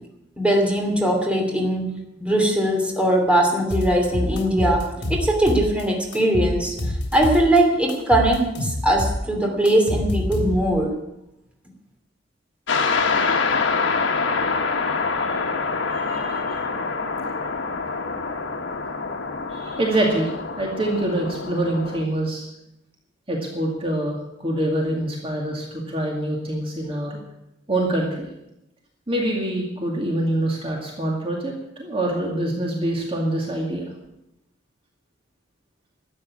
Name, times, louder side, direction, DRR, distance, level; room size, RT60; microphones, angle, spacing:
voice 1, 0.4-6.7 7.1-10.9, right 1 dB, 5° right, 1 dB, 2.9 m, -20 dB
sound 1, 3.7-5.8 6.1-7.6 7.9-10.8, left 1 dB, 65° left, 3.1 m, -27 dB
sound 2, 12.7-22.0, left 4 dB, 80° left, 1.4 m, -25 dB
voice 2, 14.8-15.4 15.9-16.6 19.5-20.3 20.6-22.5 23.3-27.2 27.7-28.3 29.1-33.9, right 1 dB, 30° right, -1 dB, 2.2 m, -25 dB
13.0 x 8.6 x 9.7 m, 0.89 s
head